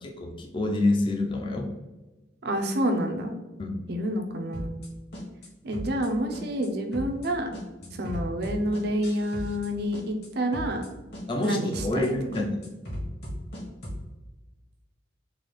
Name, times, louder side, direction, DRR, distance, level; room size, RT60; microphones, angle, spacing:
voice 1, 0.0-1.7 3.6-3.8 7.8-8.0 11.3-12.6, left 2 dB, 25° left, 2 dB, 0.5 m, -27 dB
voice 2, 2.4-3.4 3.9-4.8 5.6-7.5 7.9-10.8 11.4-12.1, equal, 60° right, 4 dB, 0.5 m, -28 dB
sound 1, 4.5-4.9 5.1-5.5 5.7-6.1 6.3-6.7 6.9-7.3 7.5-9.7 9.9-10.3 10.5-10.9 11.1-11.5 11.7-12.1 12.3-14.0, equal, 60° left, 1.4 m, -36 dB
3.9 x 2.3 x 3.2 m, 1.1 s
head